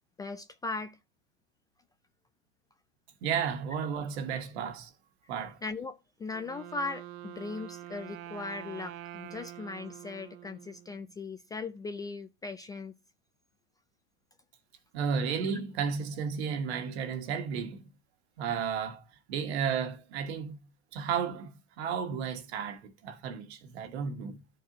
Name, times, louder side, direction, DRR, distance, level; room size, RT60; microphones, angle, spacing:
voice 1, 0.2-1.0 5.6-12.9, left 3 dB, 10° left, 0.3 m, -38 dB
voice 2, 3.2-4.9 5.3-5.6 14.9-17.8 18.4-20.6 20.9-24.4, right 7 dB, 70° right, 1.8 m, -33 dB
Wind instrument woodwind instrument, 6.3-11.2, right 13 dB, 40° right, 0.8 m, -46 dB
13.0 x 4.6 x 2.8 m
supercardioid pair, 130°, 33 cm